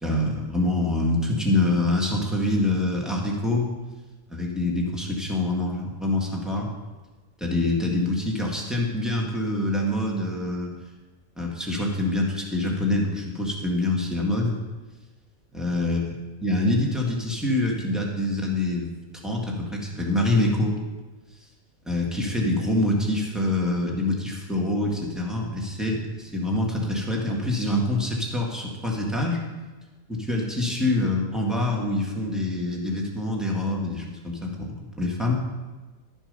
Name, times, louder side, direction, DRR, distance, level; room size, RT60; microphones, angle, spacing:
voice 1, 0.0-3.6 4.3-6.7 7.4-10.7 11.4-14.6 15.5-16.1 16.4-18.9 19.2-20.8 21.8-29.4 30.1-35.3, left 1 dB, ahead, -2 dB, 1.8 m, -25 dB
12.0 x 7.2 x 5.4 m, 1.2 s
omnidirectional pair, 1.5 m